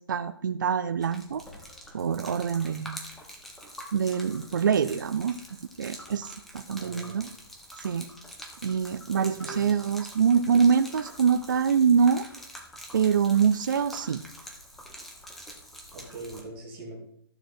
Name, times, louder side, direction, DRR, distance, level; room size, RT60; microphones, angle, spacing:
voice 1, 0.0-1.4 1.9-3.1 3.9-5.4 5.8-7.3 7.8-8.1 8.6-12.3 12.9-14.2, right 6 dB, 50° right, 10 dB, 0.5 m, -25 dB
Gurgling / Liquid, 1.0-16.4, equal, ahead, 0.5 m, -45 dB
voice 2, 6.8-7.2 9.2-9.8 15.9-17.0, right 2 dB, 15° right, -1 dB, 2.3 m, -41 dB
12.5 x 6.7 x 4.4 m, 0.69 s
hypercardioid pair, 170°, 13 cm